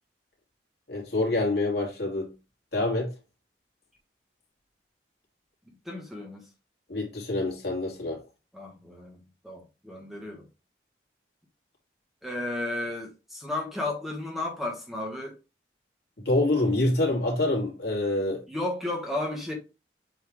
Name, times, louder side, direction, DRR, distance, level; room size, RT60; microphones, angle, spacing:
voice 1, 0.9-2.3 2.7-3.1 6.9-8.2 16.2-18.4, left 2 dB, 65° left, 2.9 m, -26 dB
voice 2, 5.7-6.5 8.5-10.4 12.2-15.4 18.5-19.5, left 2 dB, ahead, 1.4 m, -33 dB
7.8 x 3.5 x 3.6 m
head